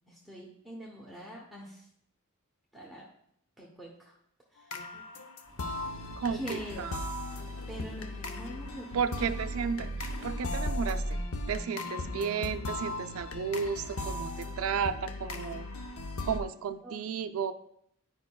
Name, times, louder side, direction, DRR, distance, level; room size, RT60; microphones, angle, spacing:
voice 1, 0.1-1.9 2.7-3.1 3.6-4.1 4.5-4.9 6.3-6.8 7.7-8.9 9.2-9.4 16.8-17.0, equal, ahead, -4 dB, 0.8 m, -44 dB
sound 1, 4.7-16.4, left 1 dB, 75° left, 0.6 m, -37 dB
sound 2, 5.4-10.7, equal, 20° left, 1.7 m, -53 dB
voice 2, 6.2-7.0 8.9-15.7 16.2-17.5, right 6 dB, 70° right, 8 dB, 0.4 m, -33 dB
10.0 x 5.2 x 2.3 m, 0.70 s
head